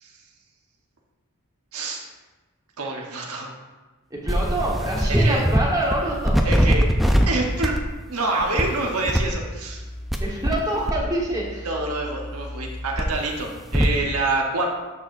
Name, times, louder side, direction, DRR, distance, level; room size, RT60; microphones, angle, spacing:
voice 1, 1.7-2.0 2.8-3.5 5.1-5.4 6.4-6.9 7.3-7.7 8.1-9.8 11.6-14.7, right 2 dB, 80° right, 0 dB, 1.0 m, -26 dB
voice 2, 4.1-6.5 10.2-11.7, right 1 dB, 15° right, -3 dB, 1.2 m, -26 dB
sound 1, 4.3-5.6 5.9-7.3 7.6-7.9 8.4-8.6 9.1-10.6 10.9-13.9, equal, ahead, 0.4 m, -23 dB
12.0 x 4.6 x 2.6 m, 1.3 s
head